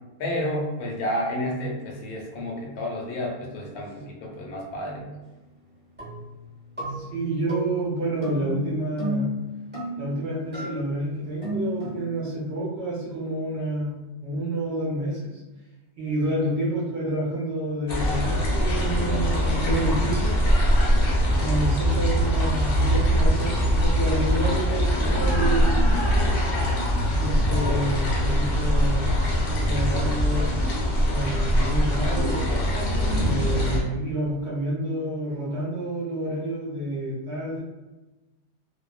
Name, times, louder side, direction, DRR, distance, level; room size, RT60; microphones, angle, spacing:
voice 1, 0.2-5.1, left 1 dB, 80° left, -1 dB, 1.1 m, -30 dB
sound 1, 6.0-6.5 6.8-10.2 10.5-10.8 11.4-12.1, left 1 dB, 10° right, 0.7 m, -33 dB
voice 2, 6.9-9.3 10.0-15.4 16.0-20.4 21.4-25.8 27.2-29.1 29.6-30.6 31.1-32.5 33.2-37.6, right 1 dB, 60° right, -7 dB, 0.7 m, -29 dB
sound 2, 17.9-33.8, equal, 60° left, 0.5 m, -22 dB
2.7 x 2.0 x 2.3 m, 1.1 s
omnidirectional pair, 1.6 m